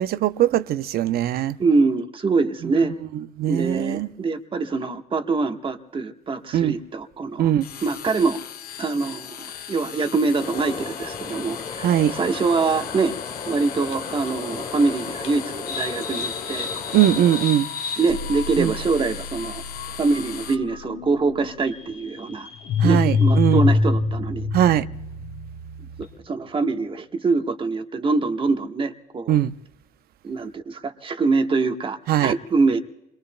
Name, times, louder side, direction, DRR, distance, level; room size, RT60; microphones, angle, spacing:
voice 1, 0.0-1.6 3.4-4.1 6.5-6.8 7.4-7.7 11.8-12.1 16.9-17.7 18.6-18.7 22.8-23.6 24.5-24.9 29.3-29.5 32.1-32.3, right 12 dB, 65° right, 0.7 m, -20 dB
voice 2, 1.6-2.9 3.5-7.5 7.8-8.4 8.8-13.1 13.5-16.7 18.0-19.6 20.0-22.5 22.8-24.5 26.0-29.4 30.2-32.8, right 4 dB, 30° right, 1.3 m, -24 dB
sound 1, 7.6-20.5, left 9 dB, 60° left, 0.8 m, -38 dB
sound 2, 10.4-17.4, left 5 dB, 40° left, 1.4 m, -35 dB
sound 3, 15.7-26.3, left 4 dB, 85° left, 2.2 m, -27 dB
29.0 x 22.0 x 2.2 m
cardioid pair, 110°, 17 cm